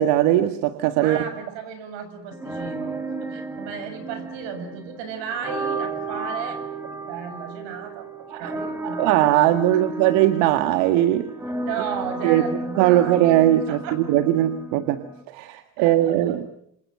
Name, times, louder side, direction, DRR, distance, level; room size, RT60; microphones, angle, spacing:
voice 1, 0.0-1.2 8.3-8.5 8.8-11.3 12.2-16.5, right 13 dB, 80° right, 9 dB, 1.9 m, -20 dB
voice 2, 1.0-6.6 7.1-9.1 11.6-13.4 13.7-14.0 15.8-16.2, right 7 dB, 60° right, 10 dB, 7.3 m, -34 dB
sound 1, 2.3-15.2, right 2 dB, 5° right, 2.4 m, -33 dB
28.0 x 27.0 x 7.8 m, 0.74 s
cardioid pair, 170°, 50 cm